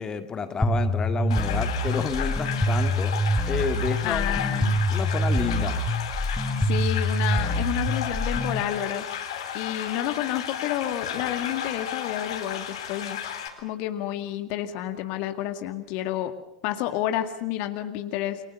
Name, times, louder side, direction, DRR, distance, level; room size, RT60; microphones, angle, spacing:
voice 1, 0.0-3.2 3.5-5.8, left 5 dB, 20° left, 8 dB, 2.1 m, -30 dB
sound 1, 0.6-8.6, equal, 5° left, 4.2 m, -25 dB
sound 2, 1.3-13.5, left 9 dB, 65° left, 3.9 m, -34 dB
voice 2, 4.0-4.7 6.6-9.1 9.5-13.2 13.6-16.3 16.6-18.4, left 12 dB, 50° left, 8 dB, 2.0 m, -30 dB
29.0 x 24.5 x 6.9 m, 0.83 s
figure-of-eight pair, 80°, 3 cm